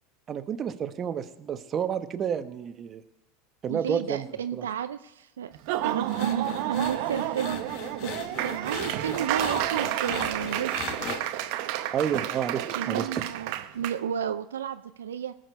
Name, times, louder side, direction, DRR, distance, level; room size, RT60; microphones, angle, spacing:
voice 1, 0.3-3.0 3.6-4.7 11.9-13.2, right 8 dB, 35° right, 10 dB, 1.0 m, -30 dB
voice 2, 3.7-5.5 5.8-8.1 8.4-10.7 12.7-15.3, right 9 dB, 85° right, 10 dB, 0.4 m, -32 dB
Laughter / Applause, 5.5-14.0, right 13 dB, 60° right, 0.8 m, -30 dB
sound 1, 6.1-11.2, left 7 dB, 60° left, 1.6 m, -38 dB
19.5 x 6.5 x 5.3 m, 0.88 s
hypercardioid pair, 85°, 0 cm